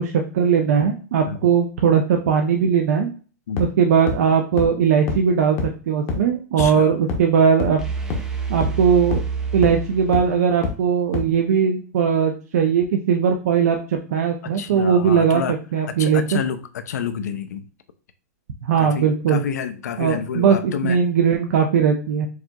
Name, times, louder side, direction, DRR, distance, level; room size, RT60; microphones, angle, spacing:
voice 1, 0.0-3.1 3.6-7.8 8.5-9.2 9.5-16.2 18.6-19.4 20.0-22.3, right 7 dB, 65° right, 3 dB, 0.6 m, -19 dB
sound 1, 3.6-3.7 4.1-4.2 4.6-4.7 5.1-5.2 5.6-5.7 6.1-6.2 6.6-6.7 7.1-7.2 7.6-7.7 8.1-8.2 8.6-8.7 9.1-9.2 9.6-9.7 10.1-10.2 10.6-10.7 11.1-11.2, left 5 dB, 30° left, 0.7 m, -24 dB
voice 2, 6.6-7.0 14.4-15.6 16.0-17.6 18.8-21.0, left 7 dB, 85° left, 9 dB, 0.5 m, -29 dB
sound 2, 7.8-10.7, right 6 dB, 5° right, 0.4 m, -28 dB
4.7 x 2.8 x 2.3 m, 0.37 s
supercardioid pair, 165°, 9 cm